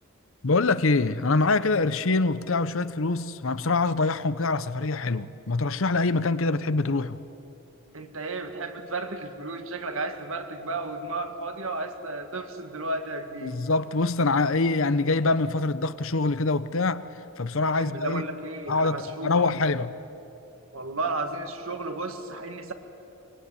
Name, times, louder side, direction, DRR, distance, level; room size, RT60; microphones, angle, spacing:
voice 1, 0.4-7.2 13.4-17.0 17.4-18.2 18.7-19.9, left 3 dB, 65° left, 0.8 m, -24 dB
voice 2, 7.9-13.6 17.8-19.6 20.7-22.7, right 2 dB, 70° right, 2.1 m, -33 dB
24.5 x 22.5 x 9.9 m
head